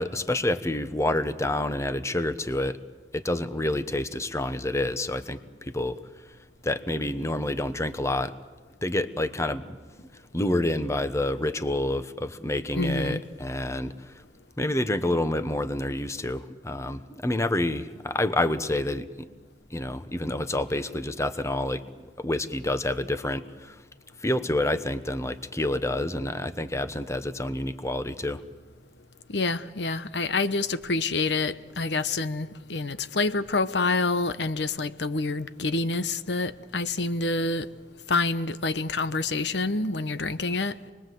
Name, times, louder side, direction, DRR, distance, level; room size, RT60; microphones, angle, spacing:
voice 1, 0.0-2.8 3.1-6.0 6.6-8.3 8.8-9.8 10.3-14.1 14.6-19.3 19.7-23.8 24.2-28.4, left 1 dB, 15° left, 1.0 m, -28 dB
voice 2, 12.7-13.2 29.3-37.7 38.1-40.7, left 3 dB, 75° left, 1.0 m, -27 dB
27.5 x 21.0 x 7.8 m
head